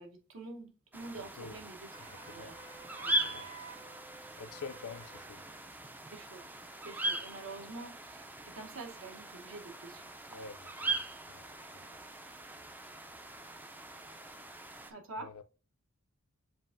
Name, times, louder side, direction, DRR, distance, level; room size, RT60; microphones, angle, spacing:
voice 1, 0.0-3.3 6.1-6.5 6.8-10.0 11.6-11.7 14.9-15.3, right 3 dB, 65° right, 0.9 m, -47 dB
sound 1, 0.9-14.9, right 1 dB, 10° right, 0.3 m, -40 dB
voice 2, 1.2-1.6 2.0-2.6 3.2-3.5 4.4-5.4 10.3-11.5 15.2-15.4, left 5 dB, 65° left, 0.4 m, -48 dB
Wind instrument woodwind instrument, 1.9-5.3, right 5 dB, 45° right, 1.7 m, -51 dB
7.4 x 2.5 x 2.5 m
head